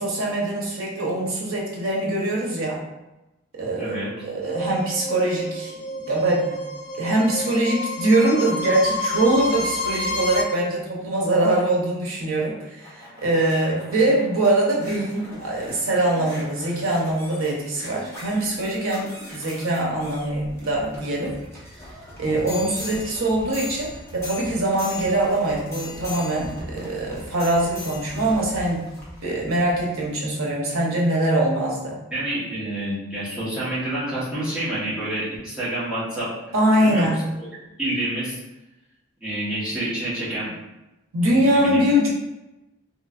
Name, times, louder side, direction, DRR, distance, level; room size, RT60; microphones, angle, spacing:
voice 1, 0.0-2.8 3.5-5.7 6.1-6.6 7.0-21.3 22.2-28.9 29.2-32.0 36.5-37.2 41.1-42.1, right 1 dB, 80° right, -2 dB, 0.9 m, -23 dB
voice 2, 3.8-4.1 22.3-22.6 32.1-36.3 36.7-37.1 37.8-38.4 39.2-40.5 41.2-41.8, right 1 dB, 5° right, -11 dB, 1.1 m, -28 dB
sound 1, 4.4-10.4, left 1 dB, 35° left, 0.3 m, -29 dB
sound 2, 12.5-30.1 30.7-30.8, left 1 dB, 15° left, 0.7 m, -40 dB
3.1 x 3.0 x 2.4 m, 0.99 s
head